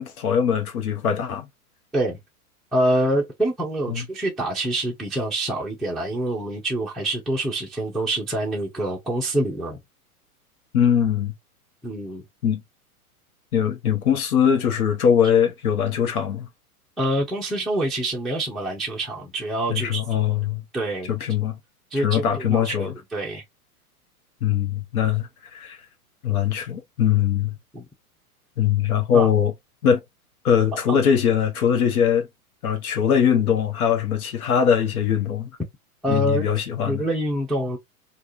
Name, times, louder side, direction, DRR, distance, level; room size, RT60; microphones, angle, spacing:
voice 1, 0.0-1.5 3.9-4.1 10.7-11.3 12.4-12.6 13.5-16.5 19.7-20.6 21.1-21.6 21.9-22.9 24.4-25.8 26.2-27.6 28.6-29.5 29.8-30.0 30.4-32.3 32.6-35.5 36.1-37.0, left 8 dB, 70° left, 1.0 m, -21 dB
voice 2, 2.7-9.8 11.8-12.2 17.0-20.0 20.7-21.2 21.9-23.4 27.7-27.8 29.1-29.3 30.9-31.0 36.0-36.5 36.9-37.8, right 1 dB, ahead, 0.5 m, -26 dB
3.4 x 2.5 x 2.6 m
hypercardioid pair, 110°, 45 cm